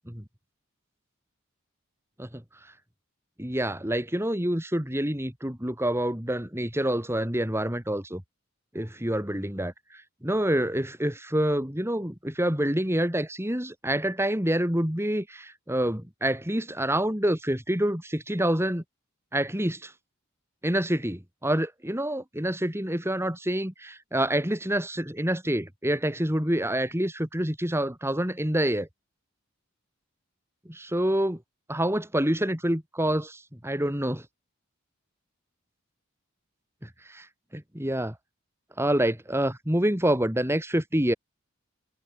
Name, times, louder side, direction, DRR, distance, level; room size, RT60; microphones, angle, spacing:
voice 1, 3.4-8.2 8.7-18.8 19.3-19.9 20.6-28.9 30.7-31.4 31.7-34.2 37.1-37.3 37.5-38.1 38.8-41.1, right 1 dB, 10° right, 3.7 m, -27 dB
head